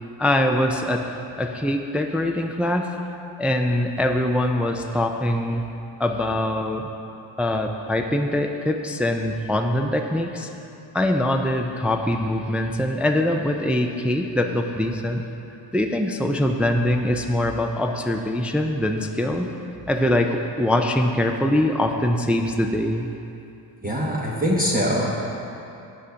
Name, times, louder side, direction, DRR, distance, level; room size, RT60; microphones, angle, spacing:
voice 1, 0.2-1.1 1.4-2.9 3.4-5.6 6.0-6.9 7.4-10.5 10.9-15.2 15.7-19.5 19.9-23.1, left 1 dB, 5° right, 3 dB, 0.4 m, -23 dB
voice 2, 23.8-25.4, equal, 20° right, -5 dB, 1.0 m, -23 dB
8.2 x 6.2 x 5.7 m, 2.8 s
cardioid pair, 95°, 47 cm